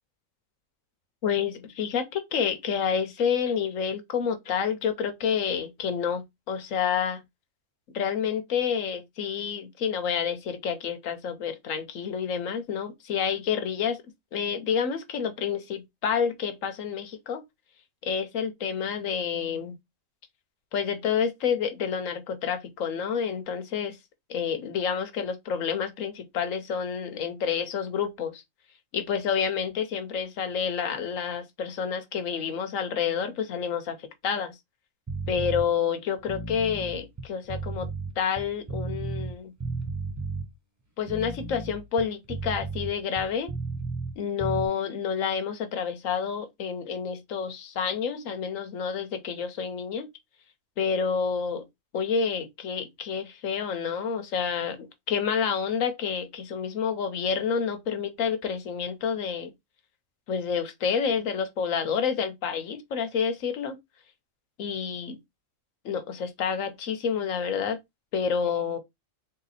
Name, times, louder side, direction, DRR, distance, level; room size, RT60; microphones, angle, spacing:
voice 1, 1.2-7.2 7.9-14.0 14.3-17.4 18.0-19.8 20.7-24.0 24.3-28.4 28.9-34.6 35.3-37.9 38.2-39.5 41.0-43.5 44.2-50.1 50.8-51.6 51.9-59.5 60.3-63.8 64.6-65.2 65.8-67.8 68.1-68.8, left 7 dB, 80° left, 1.2 m, -29 dB
sound 1, 35.1-35.7 36.2-39.3 39.6-40.5 41.0-44.1 44.4-44.7, right 3 dB, 20° right, 0.6 m, -33 dB
3.6 x 2.8 x 4.1 m
omnidirectional pair, 1.4 m